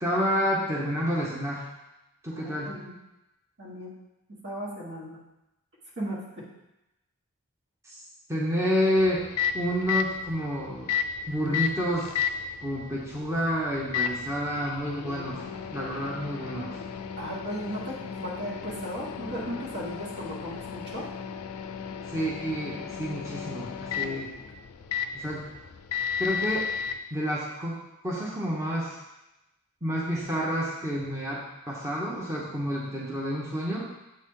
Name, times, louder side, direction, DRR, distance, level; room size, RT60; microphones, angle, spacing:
voice 1, 0.0-1.6 2.2-2.7 7.8-8.0 8.3-10.9 11.3-12.1 12.6-15.4 15.7-16.8 22.0-24.3 25.1-25.5 26.2-26.7 27.1-29.0 29.8-33.9, equal, 15° right, -5 dB, 0.9 m, -29 dB
voice 2, 2.3-2.9 3.6-4.0 4.3-5.2 6.0-6.5 17.2-21.1, equal, 55° right, -4 dB, 1.5 m, -36 dB
Microwave oven, 9.0-27.0, left 7 dB, 80° left, 0.4 m, -34 dB
7.5 x 4.1 x 3.7 m, 0.95 s
head